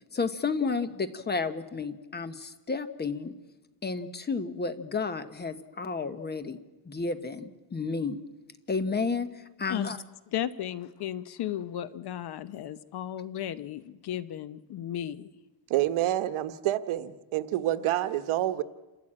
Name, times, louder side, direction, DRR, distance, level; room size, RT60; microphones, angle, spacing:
voice 1, 0.1-3.3 3.8-6.6 6.8-8.2 8.7-10.0, left 4 dB, 20° left, 1.0 m, -31 dB
voice 2, 10.3-15.3, left 11 dB, 50° left, 0.9 m, -35 dB
voice 3, 15.7-18.6, right 14 dB, 75° right, 1.2 m, -28 dB
28.5 x 13.5 x 8.7 m
cardioid pair, 170°, 49 cm